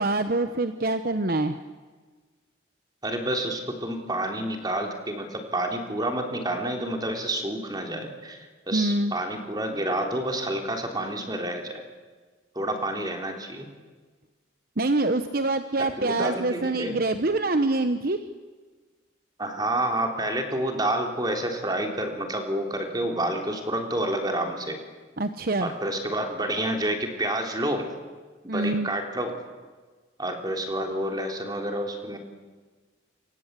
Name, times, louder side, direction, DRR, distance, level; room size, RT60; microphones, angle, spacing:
voice 1, 0.0-1.6 8.7-9.1 14.8-18.2 25.2-25.7 28.5-28.9, right 2 dB, 50° right, 9 dB, 1.0 m, -25 dB
voice 2, 3.0-11.8 12.6-13.7 15.8-17.0 19.4-24.8 25.6-27.9 28.4-29.3 30.2-32.2, right 1 dB, 20° right, 3 dB, 3.5 m, -29 dB
27.5 x 24.5 x 8.3 m, 1.4 s
head